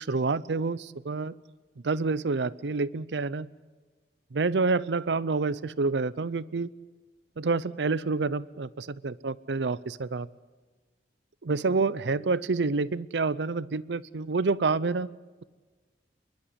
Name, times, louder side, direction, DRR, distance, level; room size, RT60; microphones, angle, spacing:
voice 1, 0.0-1.3 1.8-3.5 4.3-6.7 7.4-10.3 11.4-15.1, right 4 dB, 70° right, 18 dB, 0.6 m, -28 dB
28.0 x 11.5 x 9.8 m, 1.3 s
head